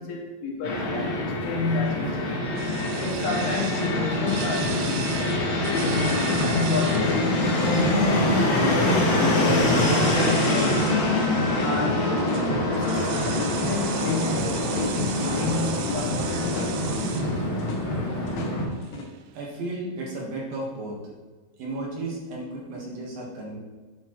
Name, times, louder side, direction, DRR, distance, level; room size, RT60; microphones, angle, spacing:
voice 1, 0.0-2.6 3.0-5.3 5.6-7.3 7.6-10.9 11.6-16.8, left 4 dB, 80° left, 0 dB, 3.6 m, -30 dB
Fixed-wing aircraft airplane, 0.6-18.6, left 1 dB, 40° left, 2.7 m, -25 dB
sound 1, 2.6-19.4, right 10 dB, 85° right, 2.5 m, -38 dB
sound 2, 4.6-19.0, left 1 dB, 65° left, 2.7 m, -33 dB
voice 2, 19.3-21.0 21.6-23.6, right 2 dB, 60° right, -3 dB, 2.8 m, -34 dB
10.0 x 7.1 x 3.2 m, 1.3 s
omnidirectional pair, 5.4 m